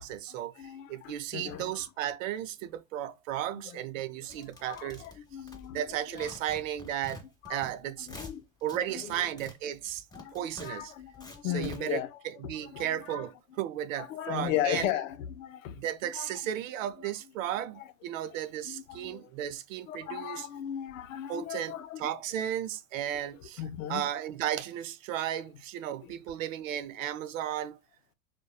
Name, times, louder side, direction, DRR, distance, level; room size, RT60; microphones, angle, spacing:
voice 1, 0.0-5.0 5.7-7.2 7.5-8.1 8.6-10.0 10.3-10.9 11.5-14.9 15.7-20.5 21.3-23.6 23.9-27.8, right 11 dB, 80° right, 0.5 m, -34 dB
voice 2, 0.6-0.9 1.3-1.8 3.5-3.8 4.7-5.8 6.1-6.3 7.5-7.7 8.1-8.4 8.7-9.2 10.1-12.2 12.7-13.3 14.0-15.7 16.1-16.3 17.8-17.9 18.7-19.2 19.9-22.5 23.6-24.0, left 11 dB, 90° left, 0.5 m, -36 dB
sound 1, 4.3-5.9 6.2-7.7 8.0-8.8 9.1-11.8, left 2 dB, 10° left, 0.8 m, -47 dB
2.7 x 2.2 x 2.3 m
supercardioid pair, 115°, 39 cm